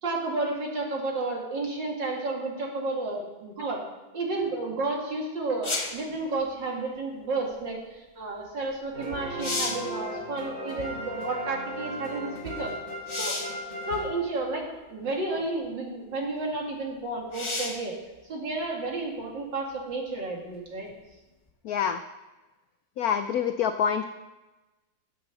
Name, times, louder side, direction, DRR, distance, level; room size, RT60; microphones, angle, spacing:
voice 1, 0.0-3.8 4.1-12.7 13.2-13.3 13.9-18.0 18.3-20.9, right 2 dB, 65° right, -1 dB, 2.9 m, -31 dB
sound 1, 5.6-6.1 8.7-8.8 9.2-9.9 13.1-13.6 14.6-14.7 17.3-17.9 21.5-21.6, left 2 dB, 25° left, 0.6 m, -32 dB
sound 2, 8.9-14.8, equal, 40° right, 3.0 m, -37 dB
voice 2, 21.6-22.0 23.0-24.0, left 8 dB, 85° left, 9 dB, 0.8 m, -26 dB
9.8 x 7.6 x 7.0 m, 1.1 s
omnidirectional pair, 2.2 m